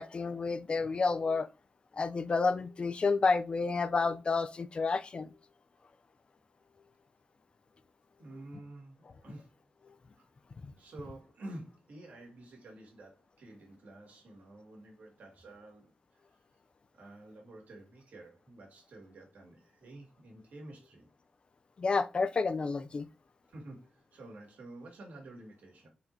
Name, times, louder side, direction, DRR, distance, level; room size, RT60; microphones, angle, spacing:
voice 1, 0.0-1.5 1.9-5.3 21.8-23.1, left 4 dB, 40° left, 0.3 m, -30 dB
voice 2, 8.2-9.5 10.1-10.3 10.8-15.9 16.9-21.1 23.5-25.9, right 1 dB, 80° right, 1.8 m, -50 dB
4.1 x 2.6 x 4.3 m
wide cardioid pair, 125°, 3 cm